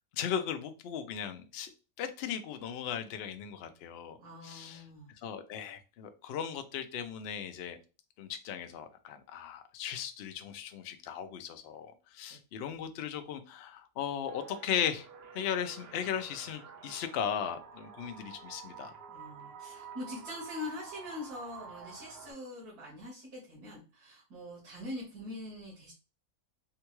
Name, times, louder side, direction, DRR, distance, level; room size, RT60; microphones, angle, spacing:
voice 1, 0.1-1.7 2.0-4.2 4.4-4.8 5.2-7.8 8.2-15.1 15.3-18.9, left 8 dB, 75° left, 9 dB, 0.5 m, -37 dB
voice 2, 4.2-5.1 19.1-25.9, left 1 dB, 85° right, -5 dB, 1.6 m, -43 dB
sound 1, 14.3-22.3, right 6 dB, 60° right, 0.6 m, -49 dB
3.7 x 2.3 x 3.0 m, 0.32 s
omnidirectional pair, 1.6 m